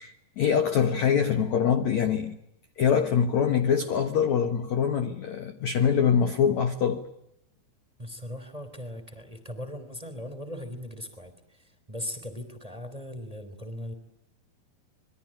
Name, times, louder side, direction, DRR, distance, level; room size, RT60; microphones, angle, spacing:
voice 1, 0.0-2.4 2.8-7.0, left 7 dB, 60° left, 8 dB, 2.0 m, -24 dB
voice 2, 8.0-13.9, left 1 dB, 10° right, 8 dB, 2.5 m, -39 dB
27.0 x 22.5 x 8.8 m, 0.79 s
omnidirectional pair, 4.9 m